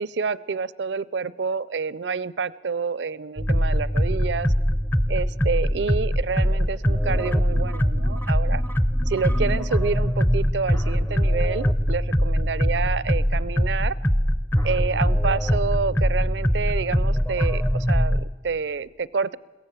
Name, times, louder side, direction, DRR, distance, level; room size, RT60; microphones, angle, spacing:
voice 1, 0.0-4.5 5.1-8.6 9.1-14.0 14.6-19.4, right 5 dB, 80° right, 20 dB, 0.5 m, -28 dB
sound 1, 3.4-18.2, equal, 10° left, 0.6 m, -22 dB
22.5 x 17.0 x 7.3 m, 1.2 s
head